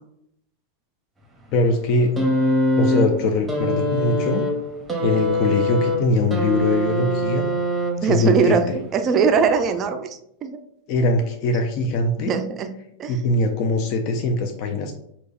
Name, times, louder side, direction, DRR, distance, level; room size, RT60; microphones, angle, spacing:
voice 1, 1.5-2.1 2.8-4.5 5.0-7.5 8.0-8.8 10.9-12.3 13.1-14.9, left 2 dB, 40° left, 5 dB, 0.4 m, -22 dB
sound 1, 2.2-8.3 9.4-9.5, left 1 dB, 10° right, 0.8 m, -23 dB
voice 2, 8.0-8.7 8.9-10.6 12.2-12.7 13.0-13.1, right 6 dB, 30° right, 7 dB, 0.4 m, -21 dB
6.0 x 2.8 x 2.3 m, 0.75 s
figure-of-eight pair, 90°, 0 cm